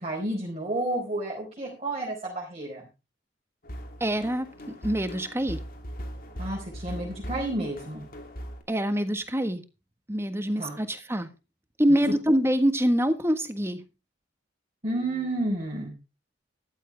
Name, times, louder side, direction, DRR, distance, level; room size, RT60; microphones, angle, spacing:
voice 1, 0.0-2.8 6.4-8.0 10.6-10.8 14.8-15.9, right 1 dB, 35° right, -2 dB, 4.5 m, -31 dB
sound 1, 3.6-8.6, equal, 50° left, 2.8 m, -39 dB
voice 2, 4.0-5.6 8.7-9.6 10.1-11.3 11.8-13.8, equal, 15° right, 9 dB, 1.4 m, -25 dB
14.0 x 12.5 x 3.4 m, 0.29 s
head